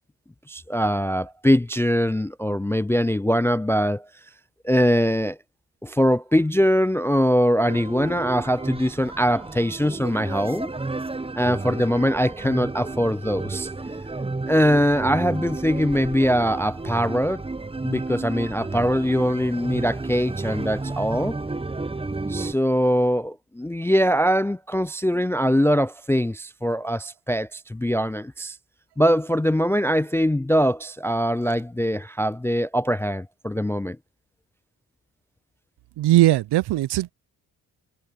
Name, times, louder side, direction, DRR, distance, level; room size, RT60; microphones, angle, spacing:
voice 1, 0.5-4.1 4.6-5.4 5.8-10.7 11.4-13.7 14.5-17.4 17.8-21.3 22.3-28.6 29.0-34.0, equal, 5° left, 0.3 m, -22 dB
sound 1, 7.6-22.5, right 3 dB, 15° right, 0.9 m, -32 dB
voice 2, 36.0-37.1, right 15 dB, 65° right, 0.6 m, -19 dB
supercardioid pair, 45°, 42 cm